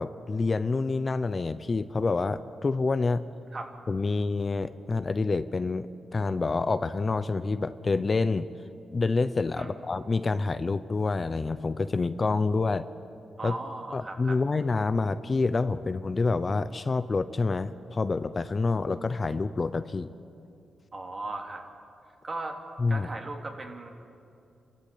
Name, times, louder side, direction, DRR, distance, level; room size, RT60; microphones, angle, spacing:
voice 1, 0.0-3.2 3.9-8.5 8.9-12.9 13.4-13.5 13.9-20.1 22.8-23.1, left 3 dB, 35° left, 12 dB, 0.7 m, -27 dB
voice 2, 13.4-14.4 20.9-21.6 22.2-22.6 22.9-23.9, right 2 dB, 40° right, 2 dB, 3.1 m, -37 dB
28.5 x 13.0 x 8.4 m, 2.6 s
cardioid pair, 80°, 0 cm